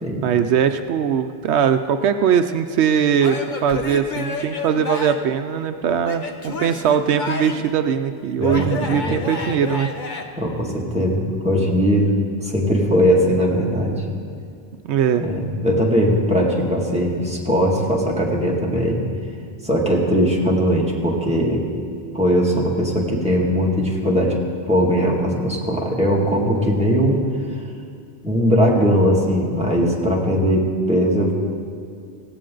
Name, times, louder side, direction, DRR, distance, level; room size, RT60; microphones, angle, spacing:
voice 1, 0.2-9.9 14.8-15.3 15.7-15.8, right 8 dB, 80° right, 8 dB, 0.9 m, -20 dB
Male speech man speaking / Yell / Laughter, 3.2-5.3 6.0-7.7 8.4-10.2, left 3 dB, 45° left, 1.1 m, -29 dB
voice 2, 8.4-9.3 10.4-12.1 12.4-14.0 15.2-19.0 19.6-21.6 22.1-24.4 24.7-27.2 28.2-31.3, equal, 5° right, -3 dB, 2.1 m, -19 dB
17.5 x 16.5 x 3.9 m, 2.3 s
omnidirectional pair, 1.1 m